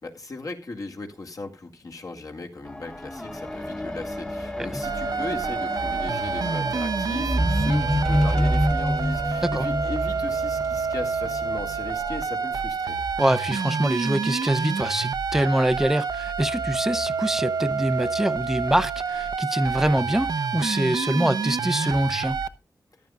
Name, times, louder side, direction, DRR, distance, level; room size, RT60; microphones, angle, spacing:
voice 1, 0.0-13.0, left 3 dB, 60° left, 2.1 m, -37 dB
sound 1, 2.7-12.2 13.0-13.1, equal, 10° left, 1.1 m, -28 dB
sound 2, 4.8-22.5, right 5 dB, 70° right, 0.7 m, -28 dB
voice 2, 13.2-22.4, right 1 dB, 5° right, 0.4 m, -24 dB
14.5 x 10.5 x 2.4 m
wide cardioid pair, 65°, 7 cm